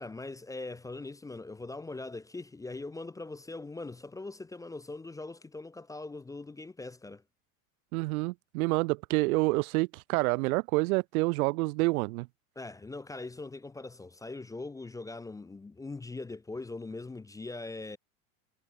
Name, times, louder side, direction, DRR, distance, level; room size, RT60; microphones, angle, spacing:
voice 1, 0.0-7.2 12.6-18.0, left 3 dB, 10° left, 0.4 m, -41 dB
voice 2, 7.9-12.3, right 24 dB, 80° right, 0.8 m, -28 dB
supercardioid pair, 105°, 42 cm